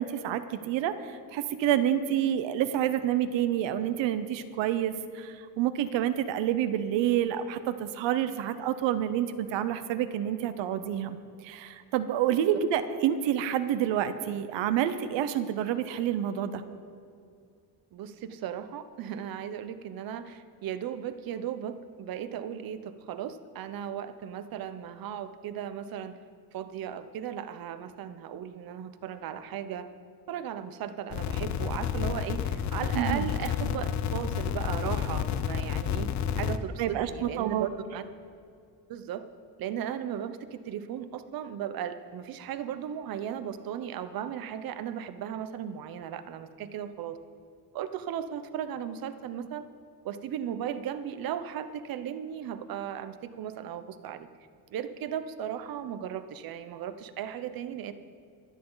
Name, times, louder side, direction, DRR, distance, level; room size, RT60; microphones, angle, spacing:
voice 1, 0.0-11.2 11.4-16.6 32.9-33.3 36.8-37.7, right 10 dB, 85° right, 11 dB, 0.9 m, -28 dB
voice 2, 17.9-26.2 26.5-29.9 30.3-38.0 38.9-39.3 39.6-47.2 47.7-49.7 50.0-54.3 54.7-57.9, right 9 dB, 55° right, 11 dB, 0.8 m, -36 dB
sound 1, 31.1-36.6, left 8 dB, 40° left, 0.5 m, -30 dB
24.0 x 9.2 x 4.0 m, 2.4 s
cardioid pair, 175°, 44 cm